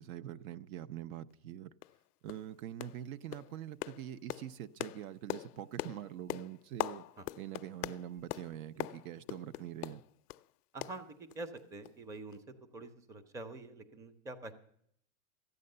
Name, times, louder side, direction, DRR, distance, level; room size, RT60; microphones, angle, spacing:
voice 1, 0.0-1.7 2.2-7.0 7.4-10.0, right 11 dB, 65° right, 0.7 m, -44 dB
sound 1, 1.3-1.4 1.8-2.0 2.3-2.5 2.8-3.1 3.3-10.5 10.8-11.6 11.8-12.0 12.3-12.4, left 17 dB, 85° left, 0.5 m, -42 dB
voice 2, 10.7-14.5, right 2 dB, 5° right, 0.5 m, -46 dB
14.0 x 8.7 x 6.6 m
supercardioid pair, 135°, 45 cm